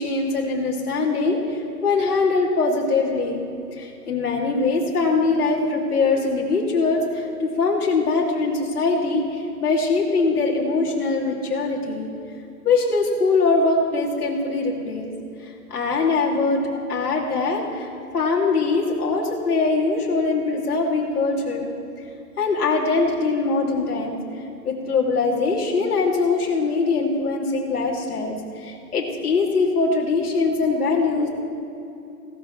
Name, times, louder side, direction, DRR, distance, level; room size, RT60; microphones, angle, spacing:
voice 1, 0.0-3.4 3.8-12.1 12.6-15.1 15.7-16.6 16.9-21.7 22.4-24.2 24.6-31.3, left 3 dB, 70° left, -2 dB, 2.9 m, -22 dB
17.5 x 12.5 x 3.3 m, 2.8 s
hypercardioid pair, 165°, 46 cm